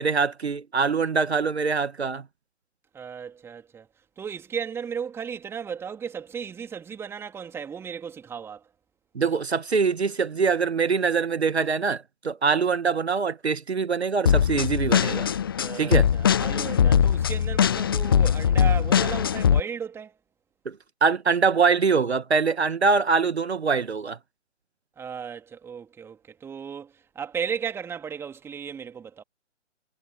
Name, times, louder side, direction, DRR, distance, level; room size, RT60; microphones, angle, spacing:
voice 1, 0.0-2.2 9.1-15.3 15.8-16.1 20.6-20.7 21.0-24.2, right 5 dB, 60° right, 1.6 m, -23 dB
voice 2, 2.9-3.9 4.2-8.7 15.6-20.2 25.0-29.2, right 7 dB, 5° right, 2.8 m, -35 dB
sound 1, 14.3-19.6, left 8 dB, 20° left, 0.7 m, -21 dB
figure-of-eight pair, 135°, 37 cm